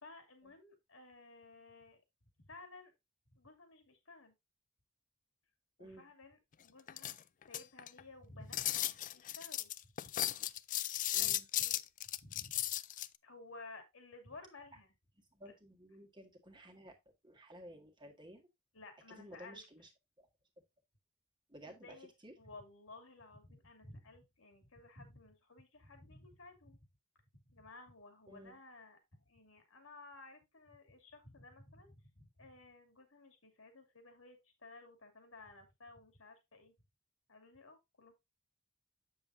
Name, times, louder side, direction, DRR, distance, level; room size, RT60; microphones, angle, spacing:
voice 1, 0.0-2.0 2.4-2.9 3.3-4.3 5.8-7.2 7.4-9.7 11.1-11.8 12.2-12.6 13.2-14.9 15.4-15.5 18.7-19.7 21.7-22.1 22.4-26.8 27.5-29.0 29.3-36.7 37.3-38.1, left 2 dB, 75° left, 2.6 m, -55 dB
sound 1, 6.9-8.0 8.5-13.1, left 13 dB, 40° left, 0.4 m, -36 dB
voice 2, 11.1-11.5 15.3-17.0 17.2-18.5 19.2-19.9 20.2-20.3 21.5-22.0 22.2-22.3 28.3-28.6, right 1 dB, 20° right, 1.7 m, -54 dB
8.0 x 7.2 x 2.6 m
head